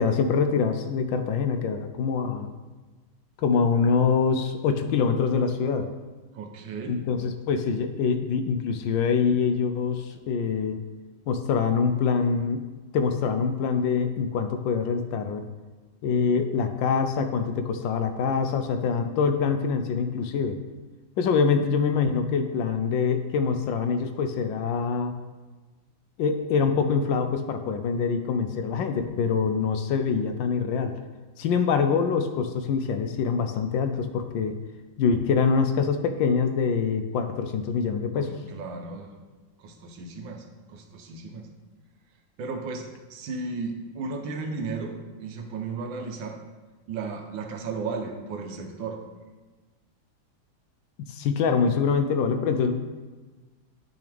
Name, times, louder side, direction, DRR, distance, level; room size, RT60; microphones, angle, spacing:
voice 1, 0.0-2.5 3.4-5.9 6.9-10.8 11.3-12.6 12.9-15.4 16.0-20.6 21.2-25.2 26.2-30.9 31.4-34.6 35.0-38.4 51.0-52.7, left 5 dB, 75° left, 7 dB, 1.3 m, -25 dB
voice 2, 6.3-7.0 38.1-39.1 39.6-41.5 42.4-42.8 43.1-46.4 46.9-49.0, right 4 dB, 75° right, 4 dB, 1.5 m, -35 dB
8.7 x 6.3 x 3.4 m, 1.3 s
omnidirectional pair, 2.2 m